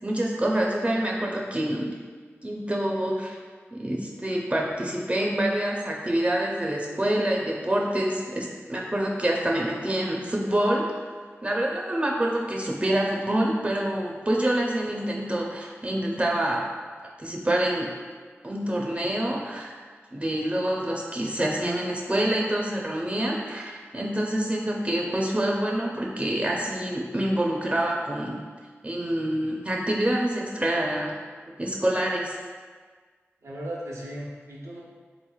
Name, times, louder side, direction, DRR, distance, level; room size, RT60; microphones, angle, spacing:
voice 1, 0.0-1.9 2.4-3.4 3.7-10.9 11.4-16.7 17.2-17.9 18.4-19.7 20.1-28.4 28.8-31.2 31.6-32.4, right 1 dB, 25° right, -2 dB, 0.4 m, -26 dB
voice 2, 33.4-34.8, right 1 dB, 90° right, -4 dB, 0.6 m, -36 dB
3.9 x 3.0 x 2.3 m, 1.6 s
wide cardioid pair, 50°, 5 cm